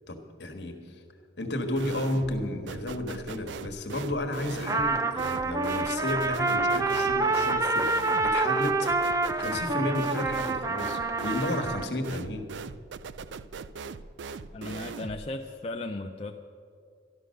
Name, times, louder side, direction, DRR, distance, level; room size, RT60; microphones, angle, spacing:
voice 1, 0.1-1.0 1.4-12.5, left 1 dB, 65° left, 6 dB, 1.4 m, -33 dB
sound 1, 1.8-2.4 2.7-15.3, right 5 dB, 75° right, 0.4 m, -40 dB
Trumpet, 4.7-11.9, right 3 dB, 15° right, 0.5 m, -27 dB
voice 2, 14.5-16.4, left 2 dB, 30° left, 3 dB, 0.4 m, -36 dB
12.5 x 12.0 x 6.4 m, 2.2 s
head